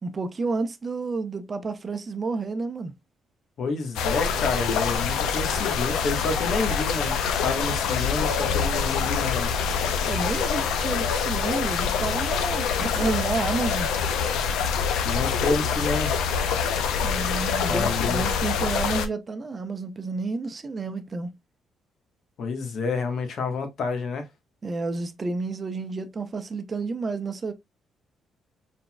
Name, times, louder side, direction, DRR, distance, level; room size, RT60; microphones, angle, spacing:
voice 1, 0.0-2.9 10.1-13.9 17.0-21.3 24.6-27.5, right 3 dB, 35° right, 0.7 m, -30 dB
voice 2, 3.6-9.6 15.0-16.1 17.7-18.3 22.4-24.3, left 3 dB, 65° left, 1.2 m, -29 dB
sound 1, 4.0-19.1, left 6 dB, 90° left, 0.6 m, -25 dB
4.4 x 3.9 x 2.2 m
cardioid pair, 90°, 0 cm